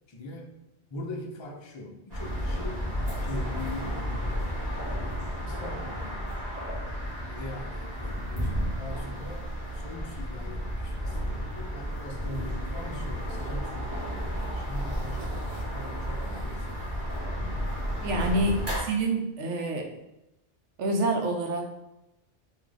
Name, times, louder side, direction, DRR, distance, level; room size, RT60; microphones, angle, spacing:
voice 1, 0.1-0.5 0.9-2.9 3.1-4.1 5.4-6.2 7.3-17.3 18.1-18.4, left 1 dB, 50° left, 2 dB, 0.3 m, -42 dB
sound 1, 2.1-18.8, equal, 35° right, 1.2 m, -32 dB
voice 2, 18.0-19.9 20.8-21.7, right 2 dB, 85° right, 2 dB, 1.0 m, -27 dB
3.1 x 2.6 x 3.8 m, 0.92 s
omnidirectional pair, 1.2 m